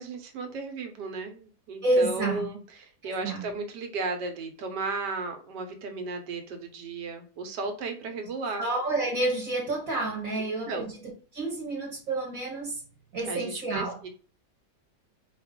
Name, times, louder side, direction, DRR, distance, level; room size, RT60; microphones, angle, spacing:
voice 1, 0.0-8.7 10.4-10.9 13.2-14.1, right 3 dB, 90° right, 5 dB, 1.4 m, -35 dB
voice 2, 1.8-2.4 3.0-3.5 8.6-10.8 11.3-12.8 13.1-14.0, right 2 dB, 60° right, -2 dB, 1.4 m, -29 dB
4.8 x 2.4 x 3.6 m, 0.39 s
omnidirectional pair, 1.8 m